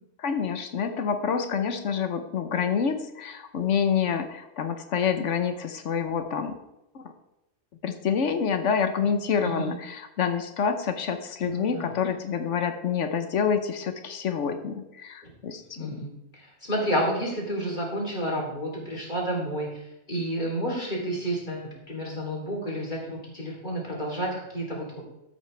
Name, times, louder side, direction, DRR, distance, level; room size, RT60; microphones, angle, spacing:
voice 1, 0.2-6.6 6.9-7.0 7.8-16.1, left 6 dB, 85° left, 7 dB, 1.2 m, -27 dB
voice 2, 11.4-11.9 15.2-15.3 15.8-19.7 20.1-25.0, equal, 40° left, -3 dB, 3.3 m, -30 dB
13.5 x 8.2 x 3.3 m, 0.89 s
omnidirectional pair, 1.2 m